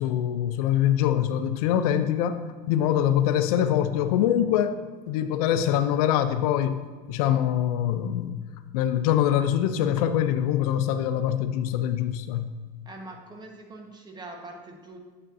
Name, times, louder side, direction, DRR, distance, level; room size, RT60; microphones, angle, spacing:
voice 1, 0.0-2.4 2.7-4.8 5.1-8.4 8.7-12.5, left 10 dB, 80° left, 10 dB, 0.5 m, -24 dB
voice 2, 12.8-15.0, right 2 dB, 20° right, 2 dB, 1.2 m, -43 dB
8.6 x 6.5 x 2.6 m, 1.4 s
supercardioid pair, 110°, 19 cm